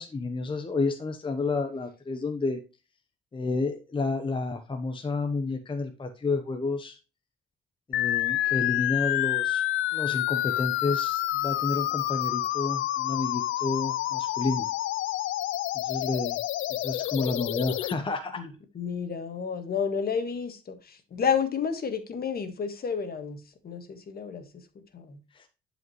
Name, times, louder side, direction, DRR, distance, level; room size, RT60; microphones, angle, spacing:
voice 1, 0.0-2.6 3.3-7.0 7.9-9.6 9.9-14.7 15.7-16.4 16.7-18.5 25.3-25.5, left 3 dB, 25° left, 0.9 m, -30 dB
sound 1, 7.9-17.9, left 14 dB, 80° left, 0.5 m, -28 dB
voice 2, 18.4-24.5 24.9-25.2, left 6 dB, 50° left, 1.6 m, -31 dB
11.0 x 5.1 x 3.1 m
cardioid pair, 90°, 20 cm